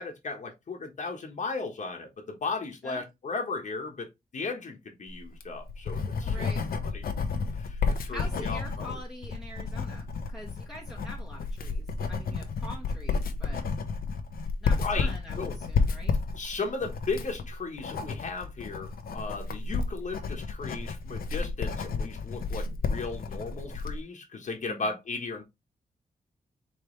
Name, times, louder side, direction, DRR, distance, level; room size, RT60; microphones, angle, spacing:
voice 1, 0.0-6.5 6.9-7.0 7.5-9.0 14.8-15.6 16.3-25.4, left 4 dB, 55° left, 1.2 m, -36 dB
Writing, 5.2-24.0, left 4 dB, 85° left, 0.8 m, -31 dB
voice 2, 6.2-6.6 8.1-13.7 14.6-16.1 24.6-25.0, left 1 dB, ahead, 1.1 m, -44 dB
5.1 x 3.2 x 3.1 m
wide cardioid pair, 105°, 15 cm